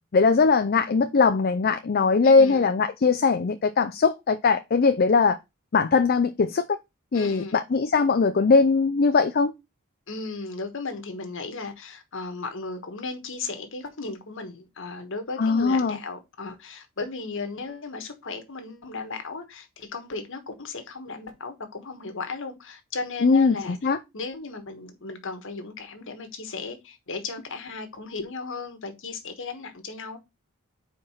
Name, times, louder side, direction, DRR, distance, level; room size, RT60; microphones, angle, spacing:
voice 1, 0.1-5.4 5.7-6.7 7.1-9.5 15.4-16.0 23.2-24.0, left 4 dB, 45° left, 0.5 m, -20 dB
voice 2, 2.2-2.7 7.1-7.6 10.1-23.8 24.1-30.2, left 4 dB, 60° left, 1.3 m, -36 dB
4.7 x 4.6 x 5.5 m
head